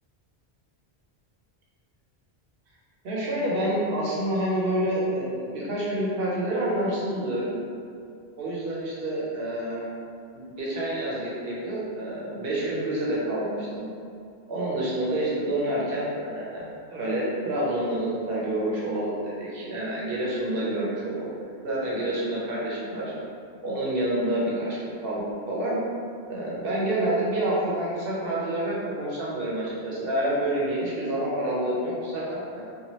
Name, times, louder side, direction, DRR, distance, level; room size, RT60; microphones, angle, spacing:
voice 1, 3.0-7.6 8.4-9.9 10.3-13.9 14.5-21.3 21.6-23.1 23.6-25.2 25.5-25.8 26.3-32.6, right 1 dB, 65° right, -6 dB, 0.9 m, -28 dB
2.8 x 2.3 x 3.0 m, 2.3 s
omnidirectional pair, 1.1 m